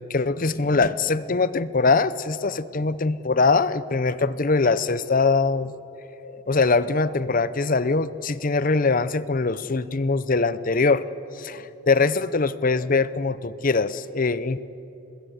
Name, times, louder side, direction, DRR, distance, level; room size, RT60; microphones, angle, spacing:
voice 1, 0.1-5.7 6.2-11.0 11.3-14.6, left 4 dB, 40° left, 15 dB, 0.7 m, -22 dB
24.5 x 20.5 x 8.1 m, 3.0 s
head